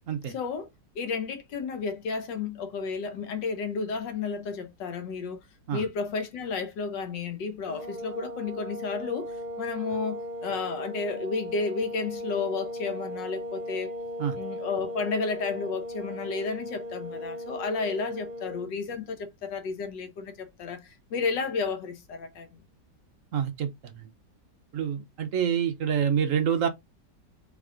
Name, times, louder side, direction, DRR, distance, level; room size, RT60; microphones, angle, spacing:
voice 1, 0.3-0.7 0.9-5.4 5.7-13.9 14.3-22.5, left 4 dB, 80° left, 1.6 m, -32 dB
sound 1, 7.7-18.7, equal, 80° right, 0.4 m, -37 dB
voice 2, 23.3-24.1 24.7-26.7, right 8 dB, 60° right, 0.9 m, -27 dB
4.0 x 3.6 x 3.7 m
omnidirectional pair, 1.9 m